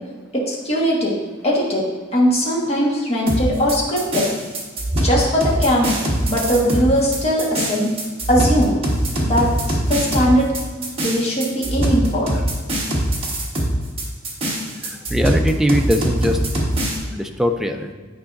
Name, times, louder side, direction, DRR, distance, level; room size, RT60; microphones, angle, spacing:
voice 1, 0.3-1.2 1.4-4.3 5.0-7.9 8.3-8.8 9.2-10.5 11.0-12.4, equal, 35° left, -3 dB, 1.4 m, -20 dB
sound 1, 3.3-17.0, right 1 dB, 30° right, 1.3 m, -22 dB
voice 2, 14.8-16.4 17.1-17.9, equal, ahead, 5 dB, 0.4 m, -21 dB
9.4 x 4.8 x 2.6 m, 1.4 s
head